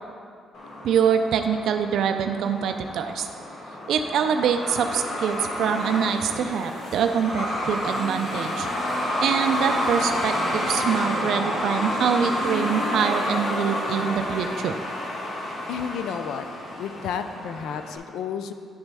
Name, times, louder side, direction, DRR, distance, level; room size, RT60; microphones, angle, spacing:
Truck, 0.5-18.0, left 1 dB, 65° left, 1.5 m, -29 dB
voice 1, 0.8-3.3 3.9-8.7 9.2-14.8, right 7 dB, 75° right, 7 dB, 0.3 m, -24 dB
voice 2, 15.7-16.5 16.8-18.5, left 7 dB, 85° left, 9 dB, 0.3 m, -31 dB
10.5 x 4.0 x 3.4 m, 2.2 s
cardioid pair, 90°, 0 cm